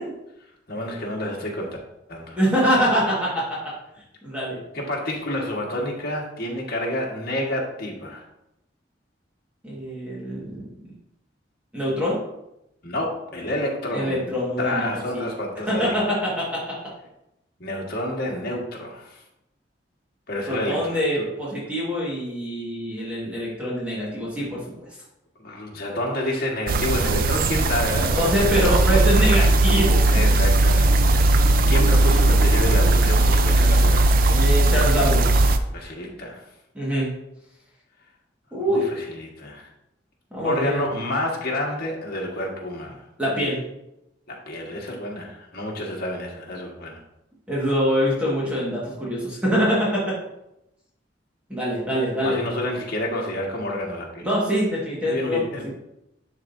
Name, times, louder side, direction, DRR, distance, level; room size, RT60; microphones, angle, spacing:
voice 1, 0.7-1.8 2.1-2.4 4.7-8.3 12.8-14.2 14.6-15.9 17.6-19.2 20.3-21.3 25.4-28.5 30.1-34.1 35.7-36.5 38.6-39.7 40.4-43.0 44.3-47.0 52.2-54.2 55.1-55.7, left 1 dB, 60° left, -1 dB, 1.5 m, -29 dB
voice 2, 2.4-3.4 4.2-4.6 9.6-10.6 11.7-12.2 13.9-15.2 15.7-16.8 20.5-24.6 28.1-30.2 34.3-35.3 36.7-37.1 38.5-38.9 40.3-40.8 43.2-43.6 47.5-50.1 51.5-52.4 54.2-55.4 55.6-55.7, equal, 10° right, -7 dB, 1.5 m, -24 dB
sound 1, 26.7-35.6, right 2 dB, 55° right, 0.4 m, -18 dB
11.0 x 3.8 x 2.6 m, 0.85 s
head